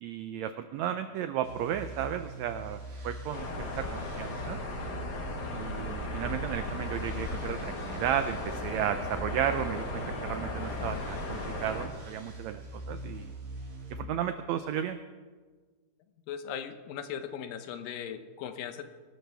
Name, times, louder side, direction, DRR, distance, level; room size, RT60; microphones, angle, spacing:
voice 1, 0.0-2.8 3.0-4.6 5.5-13.3 13.9-15.0, right 10 dB, 90° right, 9 dB, 1.5 m, -34 dB
sound 1, 1.4-13.9, right 1 dB, 55° right, 3.9 m, -43 dB
Highland near Lochan na Lairige, 3.3-11.9, left 2 dB, 40° left, 1.5 m, -36 dB
voice 2, 16.3-18.8, left 8 dB, 85° left, 9 dB, 2.6 m, -38 dB
23.0 x 12.5 x 3.5 m, 1.4 s
omnidirectional pair, 3.9 m